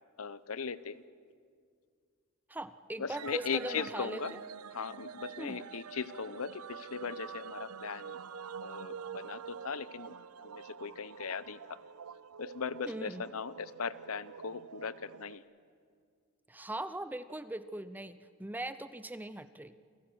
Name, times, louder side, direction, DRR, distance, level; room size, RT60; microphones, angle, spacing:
voice 1, 0.2-1.0 3.0-4.4 4.7-8.2 8.6-11.8 12.4-15.4, left 5 dB, 70° left, 16 dB, 0.8 m, -39 dB
voice 2, 2.5-4.4 5.4-5.6 12.9-13.2 16.5-19.7, right 1 dB, 10° right, 13 dB, 0.6 m, -40 dB
sound 1, 3.1-15.4, right 6 dB, 80° right, 0.6 m, -46 dB
28.5 x 17.5 x 7.9 m, 2.1 s
head